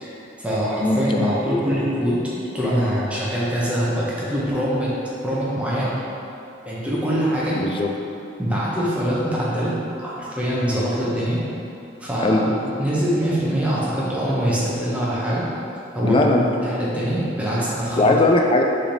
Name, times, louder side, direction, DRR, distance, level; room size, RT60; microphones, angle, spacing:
voice 1, 0.0-2.2 2.5-4.9 5.2-5.9 6.6-7.6 8.4-11.4 12.0-12.5 12.8-15.5 15.9-16.2 16.6-18.2, equal, 5° right, -8 dB, 0.7 m, -23 dB
voice 2, 0.8-1.3 7.5-7.9 12.2-12.4 16.0-16.5 18.0-18.6, left 2 dB, 25° left, 2 dB, 0.3 m, -19 dB
4.7 x 3.3 x 2.8 m, 2.8 s
head